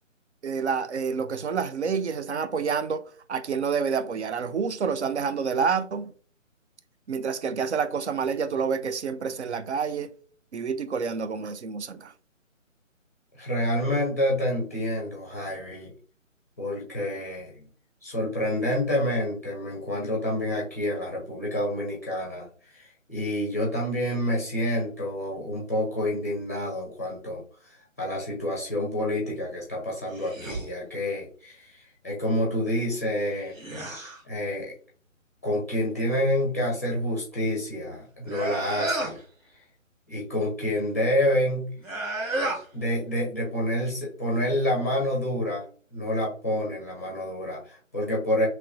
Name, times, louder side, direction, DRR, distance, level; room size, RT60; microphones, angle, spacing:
voice 1, 0.4-6.1 7.1-10.1 10.5-12.1, right 6 dB, 60° right, 0.5 m, -28 dB
voice 2, 13.4-15.9 16.6-17.6 18.0-22.5 22.7-27.4 28.0-31.7 32.0-33.5 34.2-34.7 35.4-39.2 40.1-41.7 42.7-45.6 45.9-48.5, left 1 dB, 10° left, 0.5 m, -28 dB
sound 1, 30.1-30.7 33.2-34.2 38.2-39.2 41.8-42.6, right 2 dB, 85° right, 1.4 m, -32 dB
3.1 x 3.0 x 2.4 m
figure-of-eight pair, 150°, 39 cm